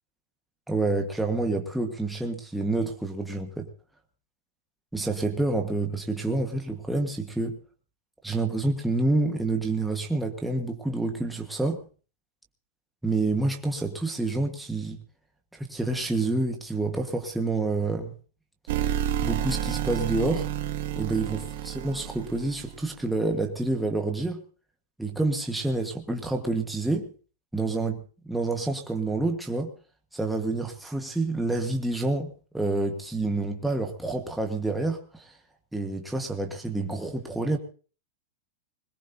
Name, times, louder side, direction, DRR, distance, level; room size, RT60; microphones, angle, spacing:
voice 1, 0.7-3.7 4.9-7.6 8.2-11.8 13.0-15.0 15.5-18.1 19.2-20.5 20.9-21.4 21.6-24.4 25.0-27.1 27.5-29.7 30.1-35.3 35.7-37.6, right 2 dB, ahead, 2 dB, 1.5 m, -28 dB
sound 1, 18.7-22.9, right 10 dB, 50° right, 2.0 m, -30 dB
21.5 x 19.5 x 2.8 m, 0.38 s
supercardioid pair, 170°, 0 cm